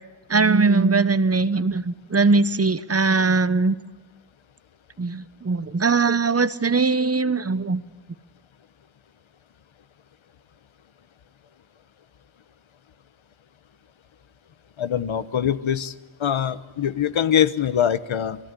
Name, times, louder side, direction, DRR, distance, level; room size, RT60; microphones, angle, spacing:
voice 1, 0.3-3.8 5.0-7.8, right 4 dB, 30° right, 15 dB, 1.0 m, -20 dB
voice 2, 14.8-15.9 16.2-18.4, left 9 dB, 90° left, 13 dB, 1.2 m, -23 dB
28.0 x 21.0 x 9.8 m, 1.3 s
wide cardioid pair, 105°, 46 cm